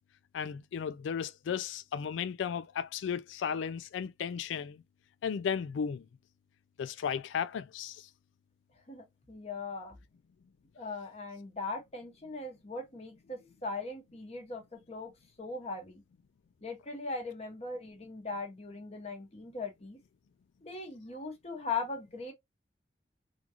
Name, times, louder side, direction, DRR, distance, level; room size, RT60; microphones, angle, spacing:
voice 1, 0.3-4.8 5.2-6.0 6.8-8.1, left 7 dB, 85° left, 0.3 m, -35 dB
voice 2, 8.9-10.0 10.7-15.1 15.4-16.0 16.6-20.0 20.6-22.3, left 3 dB, 35° left, 1.0 m, -39 dB
3.8 x 2.4 x 2.8 m
head